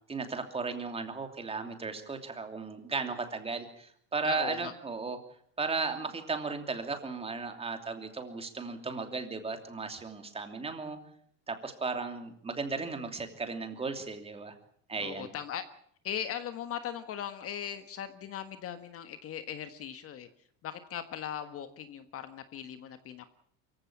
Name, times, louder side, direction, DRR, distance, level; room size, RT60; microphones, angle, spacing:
voice 1, 0.1-5.2 5.6-11.0 11.5-14.5 14.9-15.3, right 4 dB, 15° right, 6 dB, 2.9 m, -35 dB
voice 2, 4.2-4.7 15.0-15.6 16.0-20.3 20.6-23.3, left 9 dB, 40° left, 10 dB, 1.5 m, -39 dB
24.0 x 15.5 x 8.6 m, 0.64 s
cardioid pair, 140°, 36 cm